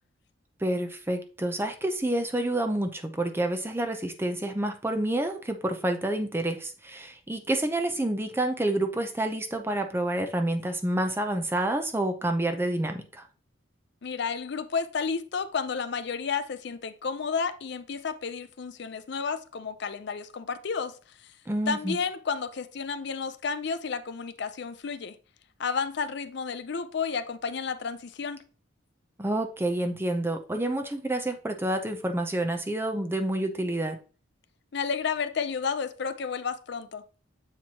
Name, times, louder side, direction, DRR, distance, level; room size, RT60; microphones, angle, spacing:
voice 1, 0.6-13.3 21.5-22.0 29.2-34.0, right 1 dB, 10° right, 6 dB, 0.5 m, -28 dB
voice 2, 14.0-20.9 21.7-25.2 25.6-28.4 34.7-37.0, left 5 dB, 55° left, 12 dB, 0.5 m, -31 dB
7.6 x 4.4 x 2.8 m, 0.37 s
head